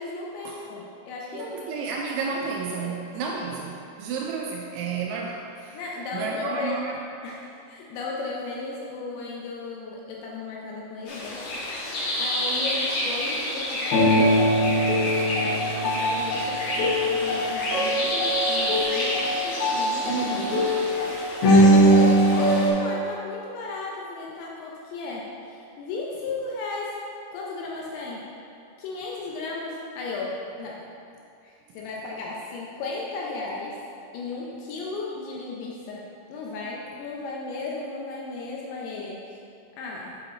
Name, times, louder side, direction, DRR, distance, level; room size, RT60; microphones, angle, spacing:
voice 1, 0.0-1.8 2.8-3.4 5.7-6.8 7.2-11.5 12.2-14.6 15.4-20.1 21.4-27.0 27.3-28.3 28.8-30.8 31.4-33.8 34.1-39.2 39.8-40.1, left 3 dB, 80° left, -3 dB, 2.7 m, -35 dB
voice 2, 1.3-5.7 6.1-7.0 20.0-20.8, right 5 dB, 85° right, -1 dB, 2.7 m, -31 dB
sound 1, 11.1-22.7, equal, 60° left, 3.0 m, -22 dB
8.0 x 4.9 x 4.1 m, 2.5 s
omnidirectional pair, 5.7 m